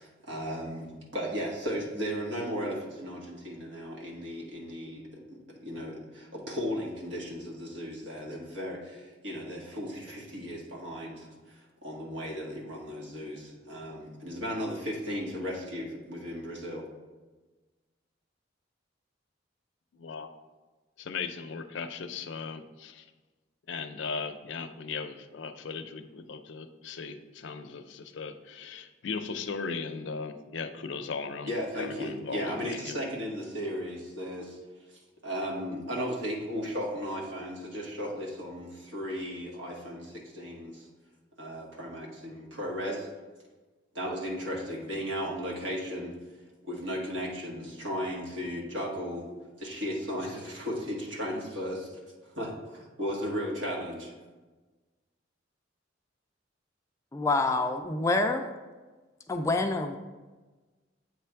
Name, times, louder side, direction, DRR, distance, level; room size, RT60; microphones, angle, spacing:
voice 1, 0.0-16.9 31.5-34.6 34.9-40.9 41.4-43.1 43.9-46.2 46.6-49.3 49.6-51.9 52.2-54.1, equal, 80° right, -3 dB, 1.6 m, -36 dB
voice 2, 19.9-20.3 21.0-23.1 23.7-31.5 31.8-33.0, left 5 dB, 75° left, 8 dB, 0.5 m, -37 dB
voice 3, 57.1-58.5 59.3-60.0, left 2 dB, 15° left, 5 dB, 0.3 m, -27 dB
8.2 x 3.4 x 4.5 m, 1.3 s
head